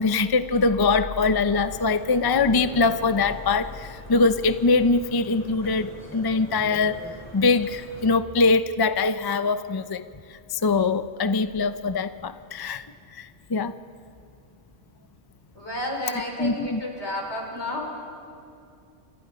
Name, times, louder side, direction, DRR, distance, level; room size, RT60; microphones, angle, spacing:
voice 1, 0.0-7.1 7.3-10.0 10.5-12.9 13.1-13.7 16.4-16.8, left 4 dB, 30° left, 11 dB, 0.4 m, -23 dB
sound 1, 1.5-8.1, equal, 10° left, 5.0 m, -43 dB
voice 2, 15.5-17.9, left 1 dB, 60° left, 1 dB, 4.5 m, -31 dB
29.0 x 27.5 x 5.2 m, 2.4 s
omnidirectional pair, 1.3 m